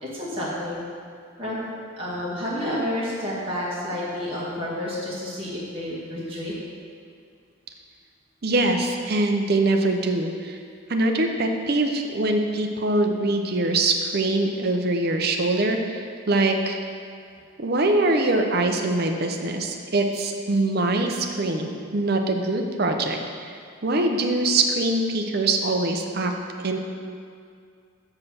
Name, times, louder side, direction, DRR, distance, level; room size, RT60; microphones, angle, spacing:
voice 1, 0.0-0.8 1.4-1.7 2.0-6.5, left 1 dB, 25° right, -8 dB, 2.0 m, -30 dB
voice 2, 8.4-10.6 10.9-16.8 17.6-26.3 26.6-26.8, right 2 dB, 50° right, 4 dB, 0.6 m, -23 dB
7.6 x 4.9 x 5.8 m, 2.3 s
head